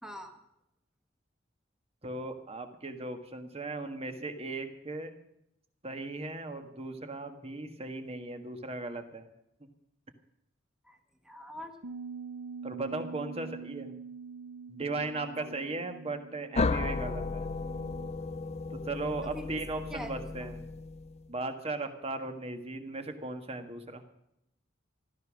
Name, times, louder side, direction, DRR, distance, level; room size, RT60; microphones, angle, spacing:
voice 1, 0.0-0.4 10.8-11.0 11.2-11.7 15.2-15.5 19.2-19.5 19.9-20.5, equal, 5° right, 5 dB, 1.6 m, -44 dB
voice 2, 2.0-5.1 5.8-9.3 12.6-13.9 14.7-17.5 18.7-20.6 21.3-24.0, right 2 dB, 30° right, 6 dB, 1.6 m, -37 dB
Bass guitar, 11.8-18.1, right 5 dB, 70° right, 0.8 m, -45 dB
sound 1, 16.6-21.3, left 3 dB, 35° left, 0.5 m, -34 dB
15.0 x 12.5 x 6.3 m, 0.79 s
head